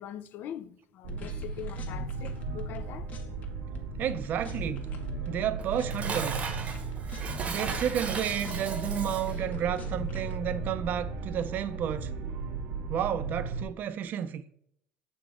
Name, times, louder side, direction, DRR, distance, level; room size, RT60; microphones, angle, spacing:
voice 1, 0.0-3.1 3.7-3.8, left 10 dB, 55° left, 0.4 m, -42 dB
sound 1, 1.0-13.6, right 4 dB, 85° right, 1.0 m, -36 dB
sound 2, 1.1-2.8 3.1-3.4 3.7-5.4 5.8-8.8 9.0-10.4, left 4 dB, 40° left, 1.2 m, -45 dB
voice 2, 4.0-4.9 5.3-6.6 7.5-12.1 12.9-14.4, right 9 dB, 50° right, 0.5 m, -31 dB
Dishes pots and pans, 5.6-9.4, right 5 dB, 30° right, 0.9 m, -36 dB
6.8 x 4.1 x 4.7 m
cardioid pair, 135°, 4 cm